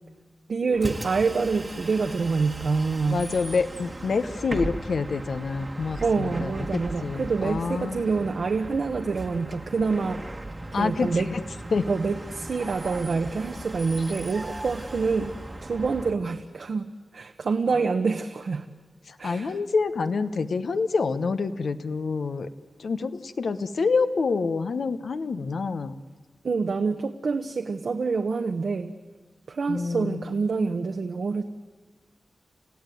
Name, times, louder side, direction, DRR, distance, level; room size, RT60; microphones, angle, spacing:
voice 1, 0.5-3.2 6.0-10.3 10.7-11.3 11.9-18.7 19.2-19.6 26.4-28.9 29.5-31.4, right 4 dB, 65° right, 5 dB, 1.0 m, -26 dB
Bus, 0.7-16.2, right 2 dB, 20° right, 1.4 m, -38 dB
voice 2, 3.1-8.0 10.7-11.4 11.7-11.9 19.1-22.5 22.8-26.0 29.7-30.3, left 4 dB, 70° left, 10 dB, 1.0 m, -27 dB
30.0 x 15.5 x 9.3 m, 1.4 s
wide cardioid pair, 130°, 0 cm